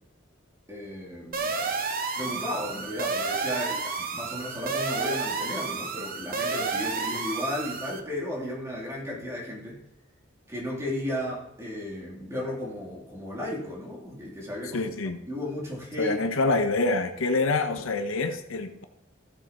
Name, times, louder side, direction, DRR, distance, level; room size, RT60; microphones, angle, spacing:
voice 1, 0.7-1.8 2.1-9.8 10.5-14.9 15.2-16.2, left 1 dB, 15° right, -5 dB, 3.0 m, -34 dB
sound 1, 1.3-8.0, right 4 dB, 45° right, 0.9 m, -31 dB
voice 2, 14.7-15.2 16.0-18.8, left 3 dB, 85° left, 7 dB, 0.8 m, -26 dB
15.0 x 7.7 x 3.0 m, 0.79 s
head